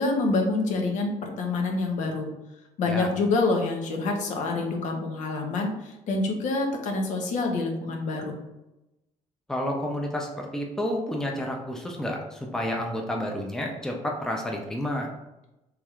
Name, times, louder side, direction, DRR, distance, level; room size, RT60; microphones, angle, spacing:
voice 1, 0.0-2.3 2.8-8.4, left 3 dB, 70° left, 2 dB, 0.8 m, -27 dB
voice 2, 9.5-15.1, left 1 dB, 5° left, 1 dB, 0.5 m, -30 dB
4.6 x 3.3 x 2.4 m, 0.95 s
cardioid pair, 140°, 13 cm